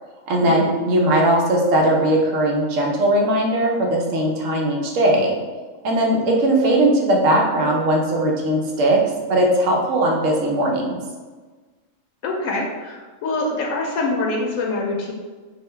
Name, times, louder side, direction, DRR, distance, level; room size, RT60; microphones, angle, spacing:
voice 1, 0.3-5.3 5.8-9.0 9.3-11.0, right 1 dB, 75° right, -1 dB, 1.1 m, -19 dB
voice 2, 12.2-15.1, left 2 dB, 80° left, -1 dB, 1.0 m, -25 dB
3.8 x 2.2 x 3.2 m, 1.3 s
omnidirectional pair, 1.4 m